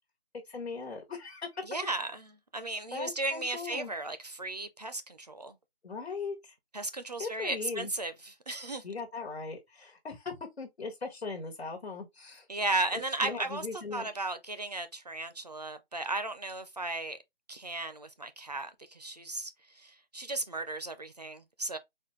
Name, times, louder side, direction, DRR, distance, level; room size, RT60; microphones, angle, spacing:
voice 1, 0.4-1.6 2.9-3.9 5.8-6.5 7.2-7.9 8.8-12.5 13.2-14.1, left 4 dB, 85° left, 1.4 m, -39 dB
voice 2, 1.6-5.6 6.7-8.8 12.5-13.7 13.9-17.2 17.5-21.8, right 2 dB, 40° right, 0.4 m, -35 dB
4.1 x 2.2 x 3.0 m
figure-of-eight pair, 165°, 31 cm